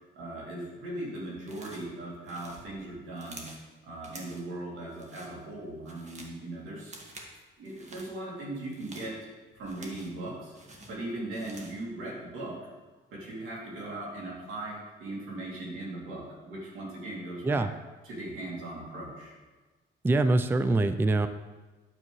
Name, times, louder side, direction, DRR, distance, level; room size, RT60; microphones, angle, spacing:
voice 1, 0.2-3.5 3.8-7.0 7.6-9.1 9.5-10.5 10.9-12.6 13.1-17.7 18.0-19.3, right 2 dB, 90° right, -4 dB, 2.6 m, -39 dB
sound 1, 1.4-1.9 2.2-3.7 4.0-4.5 4.9-5.3 5.7-6.4 6.8-7.3 7.6-8.1 8.6-10.2 10.5-11.8, right 2 dB, 35° right, 1.5 m, -49 dB
voice 2, 20.0-21.3, right 2 dB, 10° right, 11 dB, 0.4 m, -24 dB
9.7 x 7.1 x 3.1 m, 1.3 s
cardioid pair, 90°, 20 cm